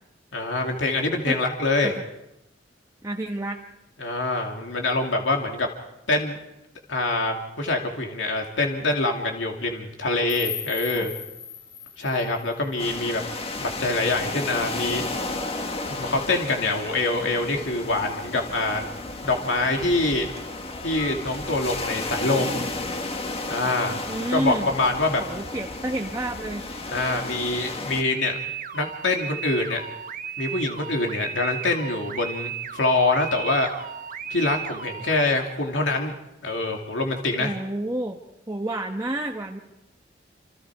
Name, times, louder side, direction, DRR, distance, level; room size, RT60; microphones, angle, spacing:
voice 1, 0.3-1.9 4.0-5.7 6.1-6.4 6.9-11.1 12.0-13.2 13.6-15.0 15.8-18.9 19.2-20.3 20.8-22.7 23.5-25.2 26.9-28.4 28.7-29.8 30.4-33.7 34.3-36.2 36.4-37.6, left 2 dB, 90° left, 1 dB, 2.7 m, -25 dB
voice 2, 3.0-3.6 11.0-11.1 24.1-24.7 25.2-26.6 37.4-38.2 38.5-39.6, right 1 dB, 20° right, 1 dB, 1.2 m, -29 dB
sound 1, 10.3-13.3, left 8 dB, 60° left, 3.6 m, -37 dB
sound 2, 12.8-28.0, left 2 dB, 35° left, 1.8 m, -33 dB
sound 3, 28.1-35.3, right 8 dB, 50° right, 1.1 m, -35 dB
28.0 x 27.5 x 4.8 m, 0.88 s
head